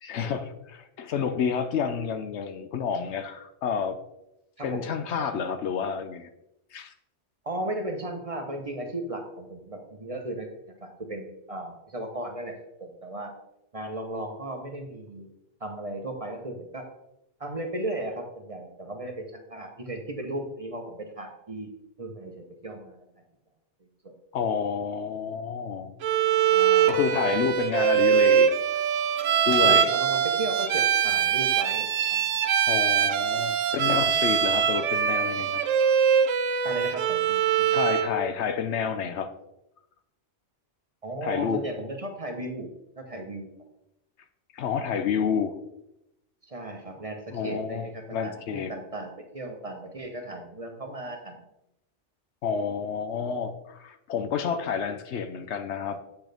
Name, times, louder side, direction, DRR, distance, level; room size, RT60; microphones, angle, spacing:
voice 1, 0.0-4.0 4.6-6.3 6.7-6.9 24.3-25.9 26.9-28.8 29.4-29.9 32.7-35.6 37.7-39.3 41.2-41.6 44.5-45.6 47.3-48.7 52.4-56.0, left 6 dB, 70° left, 9 dB, 0.9 m, -29 dB
voice 2, 7.4-10.5 10.8-13.3 13.7-15.3 15.6-16.9 17.4-21.7 22.0-23.1 24.0-24.1 26.5-27.0 27.2-27.4 29.6-32.3 36.6-37.8 41.0-42.7 43.0-43.5 46.4-51.4, right 1 dB, 30° right, 3 dB, 1.0 m, -36 dB
Bowed string instrument, 26.0-38.2, right 8 dB, 85° right, 1.0 m, -23 dB
8.2 x 6.2 x 3.4 m, 0.85 s
omnidirectional pair, 1.2 m